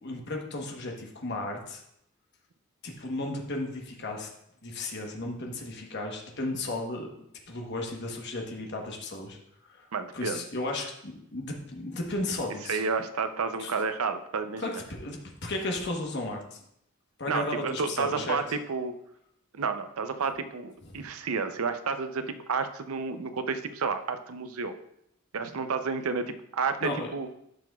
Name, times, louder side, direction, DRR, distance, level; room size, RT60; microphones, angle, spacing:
voice 1, 0.0-1.8 2.8-4.3 4.6-7.1 7.5-9.4 9.6-9.9 10.1-12.8 13.6-13.7 14.6-16.6 17.2-18.4 20.9-21.0 26.8-27.1, left 2 dB, 50° left, 1 dB, 1.2 m, -34 dB
voice 2, 9.9-10.4 12.7-14.7 17.3-18.9 19.5-24.7 25.3-27.3, right 5 dB, 80° right, 9 dB, 0.6 m, -31 dB
11.5 x 5.9 x 2.4 m, 0.75 s
head